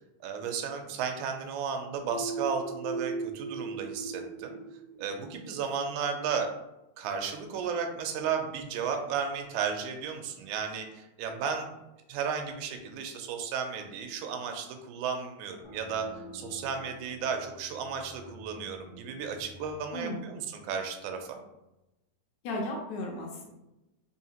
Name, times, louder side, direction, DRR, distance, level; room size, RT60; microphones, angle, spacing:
voice 1, 0.2-4.5 5.0-6.5 7.0-11.7 12.1-21.4, right 6 dB, 85° right, 5 dB, 2.0 m, -34 dB
sound 1, 2.1-5.7, right 4 dB, 55° right, 0.4 m, -38 dB
sound 2, 15.6-21.0, left 1 dB, 40° left, 0.8 m, -50 dB
voice 2, 19.9-20.3 22.4-23.5, left 1 dB, 75° left, 0 dB, 1.9 m, -35 dB
4.8 x 2.7 x 2.8 m, 0.94 s
omnidirectional pair, 3.4 m